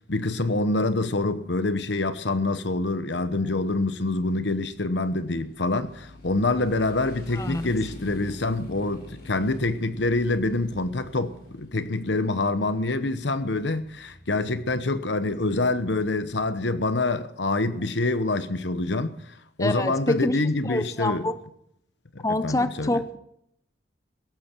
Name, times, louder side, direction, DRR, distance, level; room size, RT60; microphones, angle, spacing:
voice 1, 0.1-21.3 22.1-23.0, left 2 dB, 80° left, 1.1 m, -26 dB
Motorcycle, 1.2-16.9, left 1 dB, 55° left, 5.9 m, -48 dB
voice 2, 7.3-7.7 19.6-20.4 20.6-21.4 22.2-23.2, left 1 dB, 20° left, 0.6 m, -26 dB
17.0 x 13.5 x 4.6 m
head